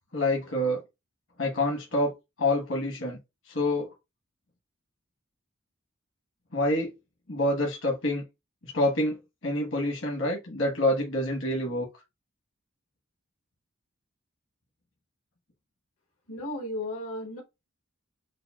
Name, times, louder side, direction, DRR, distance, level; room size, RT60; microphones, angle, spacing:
voice 1, 0.1-0.8 1.4-2.1 2.4-3.2 3.5-3.9 6.5-6.9 7.3-8.2 8.6-9.2 9.4-11.9, left 1 dB, 65° left, 1.2 m, -27 dB
voice 2, 16.3-17.4, left 1 dB, 85° left, 1.3 m, -34 dB
6.5 x 2.2 x 2.3 m
head